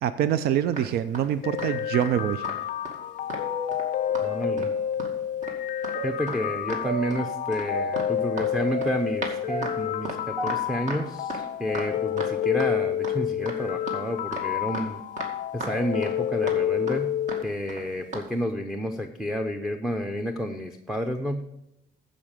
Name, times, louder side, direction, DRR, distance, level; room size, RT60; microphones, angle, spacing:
voice 1, 0.0-2.5, right 10 dB, 65° right, 13 dB, 0.5 m, -25 dB
sound 1, 0.7-2.1 2.4-2.6 2.8-3.9 4.1-4.3 4.6-5.1 5.4-5.6 5.8-6.0 6.3-6.4 6.7-7.2 7.5-12.7 13.0-13.2 13.5-15.3 15.6-16.2 16.5-16.6 16.9-17.0 17.3-17.4 17.7-17.8 18.1-18.3, right 2 dB, 45° right, 2.2 m, -35 dB
sound 2, 1.4-17.4, left 11 dB, 55° left, 0.4 m, -29 dB
sound 3, 3.0-5.2 5.9-9.2 9.5-11.9 12.1-12.2 13.0-13.1 13.8-14.1 14.7-14.8 15.6-15.9, right 1 dB, 30° right, 2.0 m, -36 dB
voice 2, 4.2-4.7 6.0-15.0 15.5-17.1 17.4-21.4, equal, ahead, 4 dB, 0.7 m, -30 dB
14.5 x 5.2 x 5.0 m, 0.82 s
cardioid pair, 110°, 17 cm